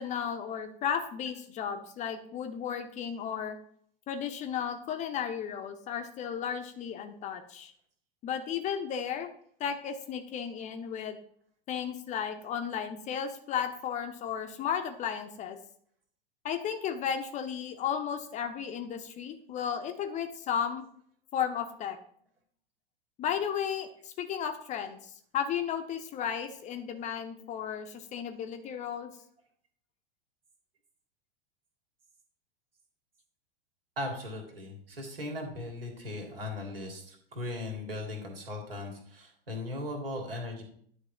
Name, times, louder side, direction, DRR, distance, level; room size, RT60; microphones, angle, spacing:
voice 1, 0.0-3.6 4.1-7.7 8.2-9.3 9.6-11.2 11.7-15.6 16.4-20.8 21.3-22.0 23.2-29.1, left 8 dB, 25° left, 7 dB, 0.7 m, -34 dB
voice 2, 34.0-40.6, left 2 dB, 70° right, 2 dB, 2.3 m, -38 dB
9.7 x 3.4 x 4.6 m, 0.62 s
figure-of-eight pair, 90°, 30 cm